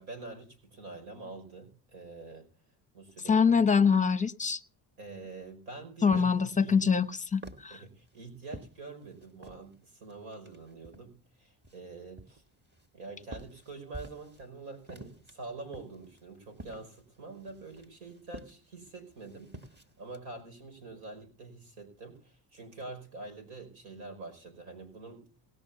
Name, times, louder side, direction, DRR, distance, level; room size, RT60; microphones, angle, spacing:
voice 1, 0.0-2.5 2.9-3.4 5.0-6.3 6.6-6.8 7.7-12.4 12.9-19.5 20.0-25.3, right 3 dB, 80° right, 5.3 m, -45 dB
voice 2, 3.3-4.6 6.0-7.8, left 6 dB, 15° left, 0.8 m, -24 dB
sound 1, 7.0-9.7 10.1-11.2 11.6-14.5 14.7-20.2, right 2 dB, 20° right, 1.6 m, -49 dB
18.5 x 6.4 x 7.0 m
supercardioid pair, 75°, 50 cm